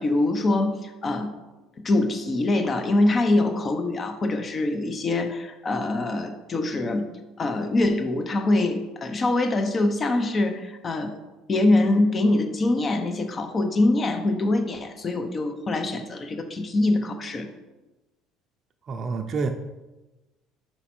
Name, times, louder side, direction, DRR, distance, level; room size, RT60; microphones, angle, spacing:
voice 1, 0.0-1.3 1.8-7.1 7.4-11.1 11.5-17.5, left 2 dB, 35° left, 7 dB, 0.8 m, -24 dB
voice 2, 18.9-19.5, right 4 dB, 45° right, 6 dB, 0.5 m, -27 dB
5.7 x 4.5 x 4.3 m, 1.1 s
supercardioid pair, 85°, 0 cm